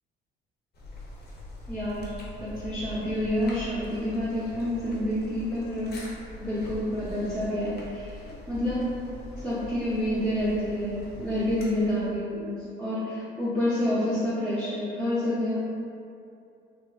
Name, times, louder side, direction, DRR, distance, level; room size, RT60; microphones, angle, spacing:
sound 1, 0.7-12.2, left 1 dB, 50° left, 0.6 m, -42 dB
voice 1, 1.7-2.1 2.4-5.9 6.4-8.2 8.5-8.8 9.4-12.4 12.8-15.6, left 1 dB, 5° left, -12 dB, 0.8 m, -28 dB
3.0 x 2.3 x 2.3 m, 2.6 s
cardioid pair, 90°, 20 cm